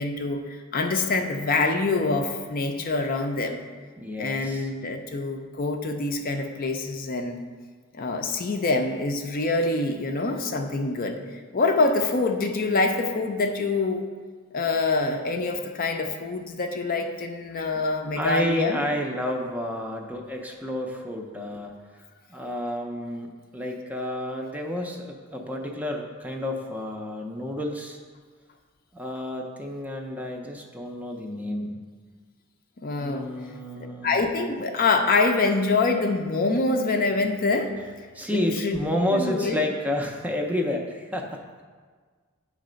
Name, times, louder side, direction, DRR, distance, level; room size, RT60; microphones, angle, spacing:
voice 1, 0.0-3.6 4.2-7.4 7.9-11.2 11.5-14.1 14.5-18.8 32.8-33.3 33.8-37.7 38.3-38.8 39.1-39.6, left 3 dB, 40° left, 4 dB, 0.5 m, -25 dB
voice 2, 4.0-4.7 18.1-21.7 22.3-28.0 28.9-31.8 33.0-34.1 38.1-41.4, left 1 dB, 5° right, 2 dB, 0.5 m, -30 dB
8.6 x 3.2 x 5.0 m, 1.6 s
head